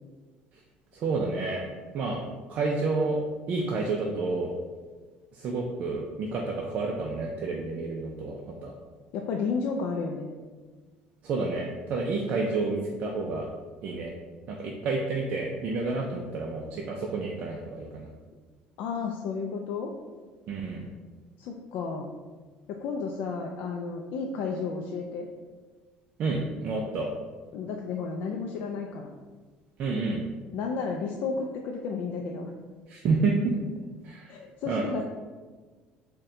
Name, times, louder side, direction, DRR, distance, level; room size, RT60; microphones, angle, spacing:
voice 1, 0.9-1.6 1.9-2.2 2.5-3.2 3.5-4.5 5.3-8.7 11.2-13.5 13.8-14.1 14.5-18.1 20.5-20.9 26.2-27.1 29.8-30.2 32.9-33.5 34.0-34.3 34.7-34.8, right 3 dB, 45° right, -1 dB, 0.4 m, -29 dB
voice 2, 9.1-10.3 18.8-19.9 21.4-22.1 22.7-25.3 27.5-29.1 30.5-32.5 34.3-35.0, left 5 dB, 65° left, 1 dB, 0.3 m, -32 dB
4.1 x 2.2 x 3.6 m, 1.4 s
cardioid pair, 135°, 3 cm